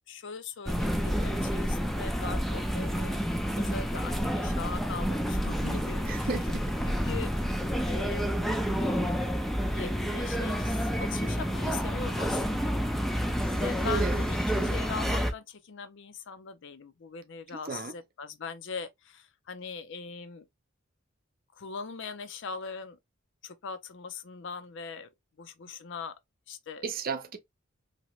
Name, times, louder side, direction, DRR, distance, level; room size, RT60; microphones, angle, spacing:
voice 1, 0.1-3.2 3.6-6.4 6.9-7.3 7.9-9.0 9.6-12.7 13.4-20.5 21.5-23.0 23.4-25.1 25.4-26.1 26.5-26.8, left 5 dB, 65° left, 0.5 m, -40 dB
sound 1, 0.7-15.3, equal, ahead, 0.4 m, -29 dB
voice 2, 6.0-6.6 13.8-14.2 17.7-17.9 26.8-27.4, right 4 dB, 45° right, 0.7 m, -33 dB
2.9 x 2.8 x 2.9 m
head